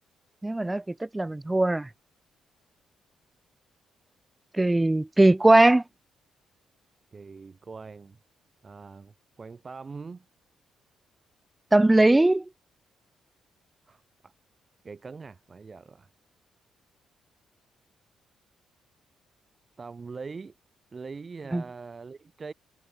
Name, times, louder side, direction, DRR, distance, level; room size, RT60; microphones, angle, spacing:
voice 1, 0.4-1.9 4.5-5.8 11.7-12.4 21.5-21.6, right 2 dB, 15° right, 0.3 m, -20 dB
voice 2, 7.1-8.2 8.6-10.2 13.9-14.3 14.8-16.1 19.8-20.6 20.9-22.5, right 4 dB, 35° right, 1.9 m, -42 dB
cardioid pair, 80°, 0 cm